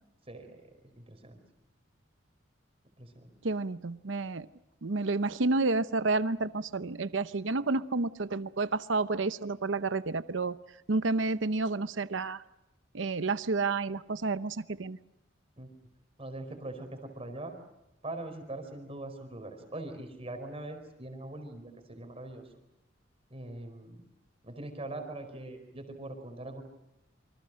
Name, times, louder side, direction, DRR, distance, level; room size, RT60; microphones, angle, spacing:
voice 1, 0.3-1.4 3.0-3.3 15.6-15.7 16.2-17.5 18.0-22.5 23.3-24.0 24.4-26.6, right 2 dB, 30° right, 5 dB, 4.8 m, -42 dB
voice 2, 3.4-4.5 4.8-10.6 10.9-12.4 12.9-15.0, right 3 dB, 75° right, 13 dB, 0.8 m, -30 dB
27.5 x 25.5 x 6.4 m, 0.91 s
head